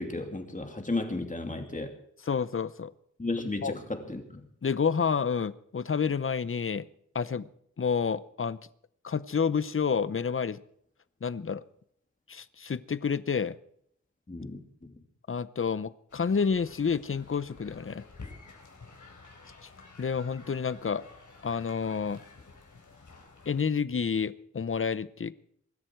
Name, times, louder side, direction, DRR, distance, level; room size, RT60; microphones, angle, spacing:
voice 1, 0.0-2.0 3.2-4.5 14.3-14.9, left 2 dB, 25° left, 4 dB, 2.6 m, -34 dB
voice 2, 2.3-2.9 3.6-3.7 4.6-6.9 7.1-7.5 7.8-8.6 9.0-10.6 11.2-11.6 12.3-13.6 15.3-18.0 20.0-21.0 21.4-22.2 23.5-25.3, left 6 dB, 45° left, 17 dB, 0.7 m, -29 dB
sound 1, 16.1-23.6, left 3 dB, 75° left, 4.0 m, -51 dB
23.5 x 12.5 x 4.6 m, 0.68 s
wide cardioid pair, 100°, 31 cm